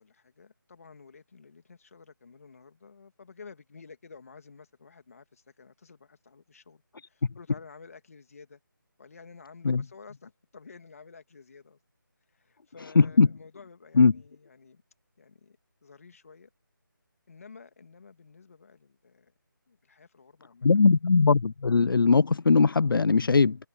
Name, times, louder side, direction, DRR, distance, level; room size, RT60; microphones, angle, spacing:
voice 1, 0.0-8.6 9.0-11.8 12.3-14.8 15.2-16.5 17.3-19.3 19.7-20.9, left 5 dB, 40° left, 2.8 m, -51 dB
voice 2, 13.0-13.3 14.0-14.1 20.6-23.6, left 4 dB, 75° left, 0.5 m, -20 dB
figure-of-eight pair, 175°, 11 cm